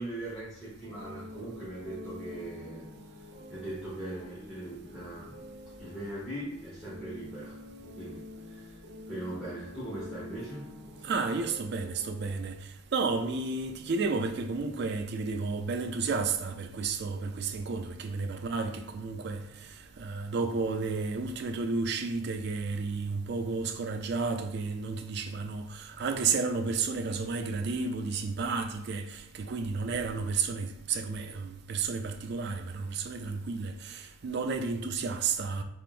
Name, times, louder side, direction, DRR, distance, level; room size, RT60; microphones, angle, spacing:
voice 1, 0.0-2.8 3.5-5.4 5.8-7.6 8.0-8.8 9.1-10.7 11.0-11.1, right 1 dB, ahead, 1.0 m, -40 dB
sound 1, 0.8-12.3, left 1 dB, 65° right, 1.5 m, -47 dB
voice 2, 11.0-19.7 20.0-35.6, right 4 dB, 50° right, 0.3 m, -32 dB
3.7 x 3.2 x 2.5 m
head